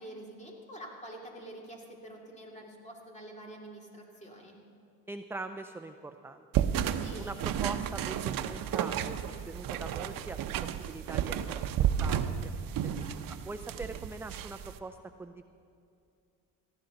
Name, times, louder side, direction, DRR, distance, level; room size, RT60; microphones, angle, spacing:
voice 1, 0.0-4.6 6.9-7.4 12.8-13.2, right 1 dB, 20° left, -1 dB, 2.7 m, -47 dB
voice 2, 5.1-6.5 7.2-12.7 13.4-15.4, right 3 dB, 5° right, 8 dB, 0.3 m, -43 dB
sound 1, 6.5-14.8, right 9 dB, 65° right, 0.7 m, -32 dB
19.0 x 14.0 x 3.9 m, 2.6 s
cardioid pair, 105°, 36 cm